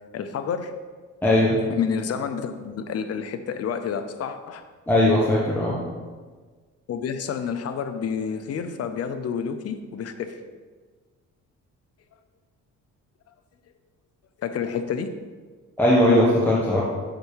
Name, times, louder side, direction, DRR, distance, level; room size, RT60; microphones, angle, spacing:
voice 1, 0.1-0.7 1.7-4.6 6.9-10.4 14.4-15.2, left 6 dB, 55° left, 9 dB, 0.7 m, -29 dB
voice 2, 1.2-1.6 4.9-5.8 15.8-16.8, left 1 dB, 5° left, -6 dB, 1.3 m, -19 dB
6.5 x 5.1 x 4.7 m, 1.4 s
cardioid pair, 90°, 30 cm